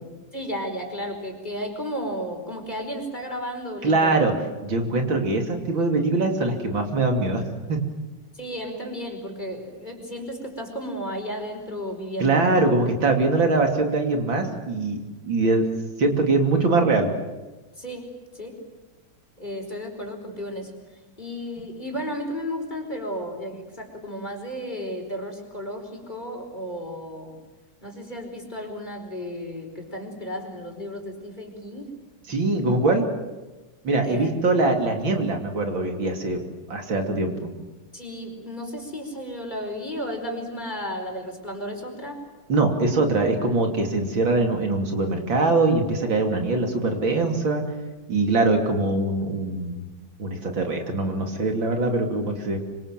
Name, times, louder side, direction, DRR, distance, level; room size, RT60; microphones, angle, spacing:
voice 1, 0.3-4.3 8.3-12.6 17.8-18.1 18.3-18.6 19.4-27.4 27.8-31.9 34.0-34.3 37.9-42.2, equal, 20° left, 2 dB, 5.0 m, -33 dB
voice 2, 3.8-4.3 4.6-7.8 12.2-15.0 15.2-15.7 16.0-17.1 32.3-33.1 33.8-36.4 36.7-37.5 42.5-47.7 48.1-49.9 50.2-52.6, right 3 dB, 85° right, 3 dB, 3.7 m, -22 dB
26.0 x 25.0 x 7.6 m, 1.1 s
omnidirectional pair, 2.1 m